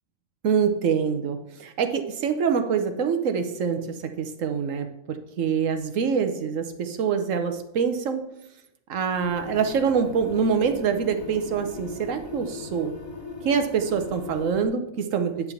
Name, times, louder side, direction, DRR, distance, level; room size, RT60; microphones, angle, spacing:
voice 1, 0.4-3.8 4.2-8.2 8.9-12.9 13.4-15.3, right 6 dB, 75° right, 7 dB, 1.2 m, -25 dB
sound 1, 9.1-14.7, left 4 dB, 85° left, 1.9 m, -39 dB
10.0 x 3.5 x 7.0 m, 0.83 s
omnidirectional pair, 1.4 m